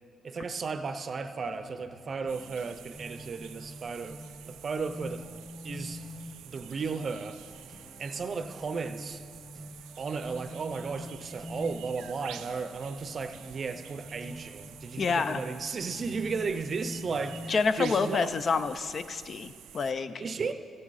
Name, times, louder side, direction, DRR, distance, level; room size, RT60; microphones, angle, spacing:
voice 1, 0.2-4.2 4.5-5.2 5.6-6.0 6.4-7.4 8.0-9.2 10.0-18.3 20.2-20.5, right 4 dB, 45° right, 10 dB, 0.6 m, -34 dB
sound 1, 1.4-17.5, left 1 dB, 15° left, 1.2 m, -46 dB
sound 2, 2.3-19.9, right 10 dB, 85° right, 0.4 m, -49 dB
voice 2, 15.0-15.4 17.5-20.2, left 5 dB, 45° left, 11 dB, 0.4 m, -28 dB
13.5 x 8.7 x 4.1 m, 2.1 s
cardioid pair, 90°, 0 cm